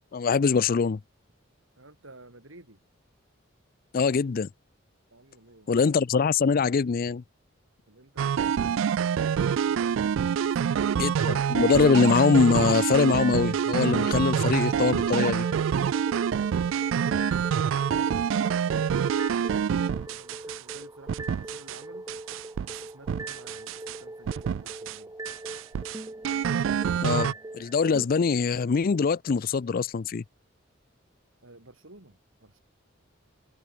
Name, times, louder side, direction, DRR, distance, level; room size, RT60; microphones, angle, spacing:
voice 1, 0.1-1.0 3.9-4.5 5.7-7.2 11.0-15.5 27.0-30.2, left 5 dB, 45° left, 0.4 m, -23 dB
voice 2, 1.8-2.8 5.1-5.8 7.9-10.0 10.3-10.9 16.5-18.8 19.3-22.1 22.6-25.1 31.4-32.6, right 2 dB, 85° right, 4.8 m, -51 dB
sound 1, 8.2-20.8 21.1-21.8 22.1-24.0 24.3-25.0 25.3-27.3, right 7 dB, 70° right, 0.3 m, -26 dB
sound 2, 11.2-12.2 13.2-28.1, right 2 dB, 15° right, 0.8 m, -42 dB
head